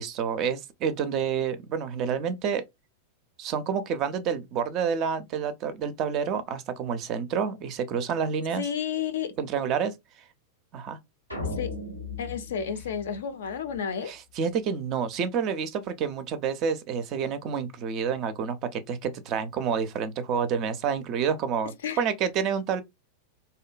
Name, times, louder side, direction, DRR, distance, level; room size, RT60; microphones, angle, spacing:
voice 1, 0.0-2.6 3.4-8.7 9.4-9.9 10.7-11.0 14.1-22.8, right 7 dB, 35° right, 0.4 m, -28 dB
voice 2, 8.6-9.3 11.4-11.7 12.2-14.1 21.8-22.0, left 7 dB, 60° left, 0.4 m, -31 dB
sound 1, 11.3-13.8, left 3 dB, 90° left, 0.7 m, -36 dB
2.6 x 2.1 x 2.4 m
figure-of-eight pair, 90°, 0 cm